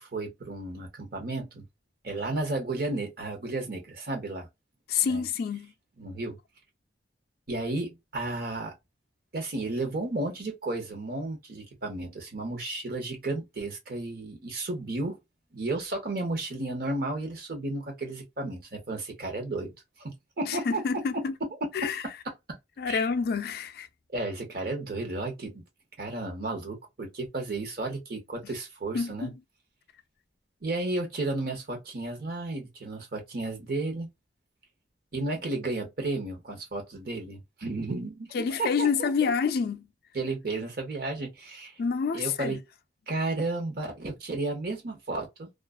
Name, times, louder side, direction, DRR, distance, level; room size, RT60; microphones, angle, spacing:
voice 1, 0.0-1.6 2.0-4.5 5.0-5.2 6.0-6.4 7.5-8.7 9.3-15.2 15.5-19.7 20.0-20.8 21.4-21.7 22.5-22.6 22.9-23.1 24.1-25.6 26.0-29.3 30.6-34.1 35.1-39.1 40.1-41.7 42.1-42.6 43.1-45.5, right 2 dB, 50° right, 0.9 m, -33 dB
voice 2, 4.9-5.7 20.4-21.3 21.7-22.0 22.8-23.9 28.9-29.3 38.3-39.9 41.8-42.6, left 6 dB, 55° left, 0.3 m, -28 dB
2.4 x 2.4 x 2.2 m
head